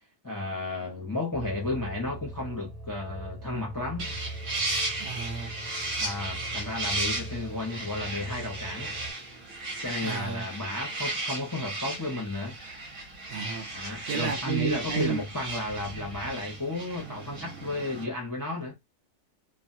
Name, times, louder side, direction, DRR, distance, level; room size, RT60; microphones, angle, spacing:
voice 1, 0.2-4.2 6.0-8.9 9.8-12.6 13.7-18.7, left 2 dB, 30° left, 0.3 m, -33 dB
sound 1, 1.3-9.1, right 1 dB, 30° right, 0.9 m, -41 dB
sound 2, 4.0-18.0, right 2 dB, 50° right, 1.2 m, -35 dB
voice 2, 5.0-5.6 10.0-10.5 13.3-15.2, right 8 dB, 70° right, 0.9 m, -32 dB
3.0 x 2.2 x 2.6 m
omnidirectional pair, 1.7 m